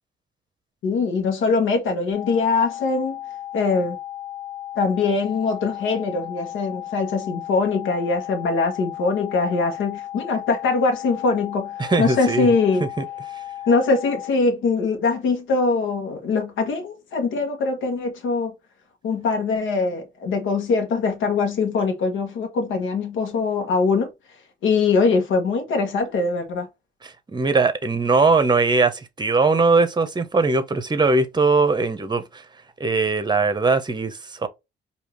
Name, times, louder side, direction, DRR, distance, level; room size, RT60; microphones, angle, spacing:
voice 1, 0.8-3.2 3.5-4.0 4.8-11.7 12.0-12.9 13.7-18.5 19.0-24.1 24.6-26.7, left 4 dB, 80° left, 1.3 m, -22 dB
sound 1, 2.1-14.3, left 12 dB, 10° left, 1.4 m, -35 dB
voice 2, 11.8-12.5 13.0-13.1 27.0-32.2 32.8-34.5, right 3 dB, 20° right, 0.9 m, -20 dB
4.8 x 2.9 x 3.1 m
cardioid pair, 90°, 20 cm